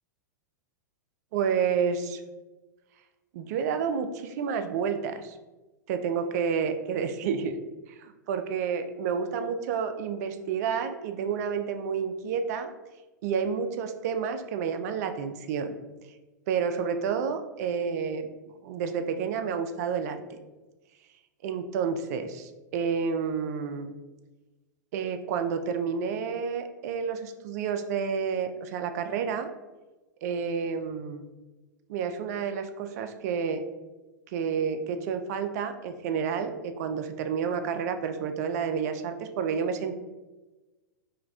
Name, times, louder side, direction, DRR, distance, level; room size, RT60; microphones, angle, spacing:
voice 1, 1.3-2.2 3.3-5.4 5.9-7.6 7.9-12.7 13.2-15.8 16.5-18.3 18.6-20.4 21.4-23.9 24.9-29.5 30.2-31.2 31.9-33.6 34.3-39.9, right 6 dB, 55° right, 8 dB, 0.4 m, -30 dB
4.5 x 2.2 x 2.3 m, 1.2 s
hypercardioid pair, 110°, 10 cm